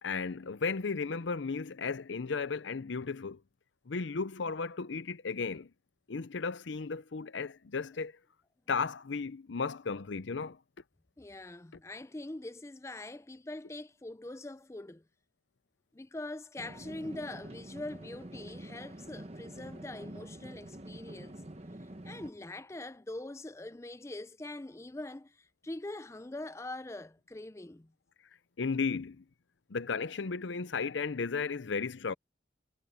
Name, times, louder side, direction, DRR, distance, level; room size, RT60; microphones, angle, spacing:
voice 1, 0.0-3.4 3.9-5.7 6.1-8.1 8.7-10.6 28.6-29.2 29.7-32.1, left 4 dB, 80° left, 0.7 m, -34 dB
voice 2, 11.2-15.0 15.9-21.4 21.8-27.9, left 2 dB, 15° left, 0.4 m, -43 dB
sound 1, 16.6-22.3, right 1 dB, 35° right, 1.1 m, -46 dB
head